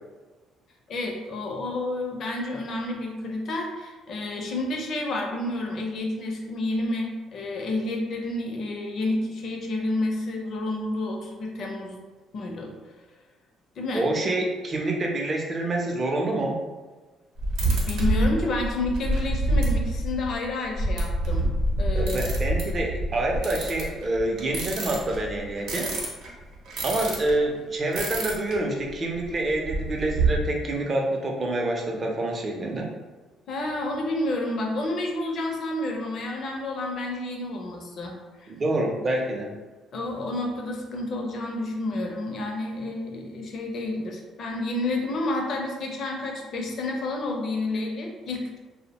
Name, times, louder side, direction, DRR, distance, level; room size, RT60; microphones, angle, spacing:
voice 1, 0.9-12.0 12.3-12.7 13.8-14.3 17.9-21.5 21.8-22.3 33.5-38.5 39.9-48.6, left 2 dB, 55° left, 1 dB, 0.5 m, -30 dB
voice 2, 13.9-16.6 22.0-25.9 26.8-32.9 38.5-39.5, right 2 dB, 35° right, 0 dB, 0.5 m, -27 dB
sound 1, 17.4-27.4 27.9-28.6 28.9-29.0 29.2-30.4, right 1 dB, 75° right, 0.7 m, -27 dB
2.6 x 2.0 x 2.8 m, 1.3 s
cardioid pair, 110°, 0 cm